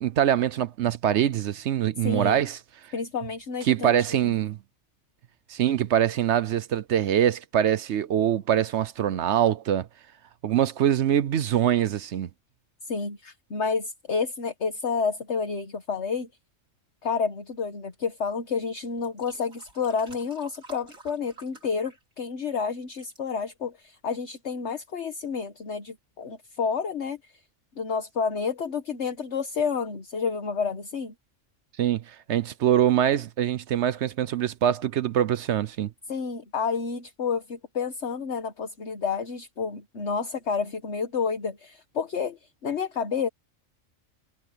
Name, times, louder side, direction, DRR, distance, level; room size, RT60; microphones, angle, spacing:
voice 1, 0.0-2.6 3.7-4.6 5.5-9.9 10.4-12.3 31.8-35.9, right 10 dB, 65° right, 0.9 m, -24 dB
voice 2, 2.0-2.4 2.9-4.4 12.8-16.3 17.0-27.4 27.7-31.1 36.1-43.3, left 5 dB, 55° left, 1.7 m, -30 dB
sound 1, 18.4-18.5 19.0-22.5 22.7-23.2 23.9-24.0, right 2 dB, 85° right, 5.3 m, -50 dB
omnidirectional pair, 1.4 m